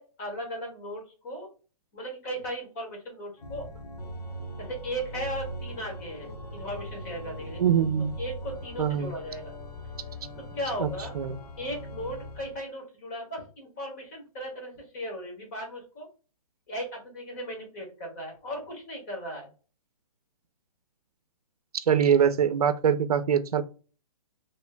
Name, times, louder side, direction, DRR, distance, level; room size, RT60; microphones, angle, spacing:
voice 1, 0.0-1.5 1.9-3.7 4.6-7.6 8.2-9.5 10.5-11.1 11.6-16.1 16.7-19.5, equal, 25° left, 0 dB, 1.6 m, -37 dB
Organ, 3.4-12.6, equal, 80° left, 0.9 m, -40 dB
voice 2, 7.6-8.1 8.8-9.1 10.8-10.9 11.1-11.4 21.9-23.6, right 8 dB, 75° right, 11 dB, 0.6 m, -23 dB
4.4 x 3.1 x 2.2 m, 0.35 s
hypercardioid pair, 175°, 19 cm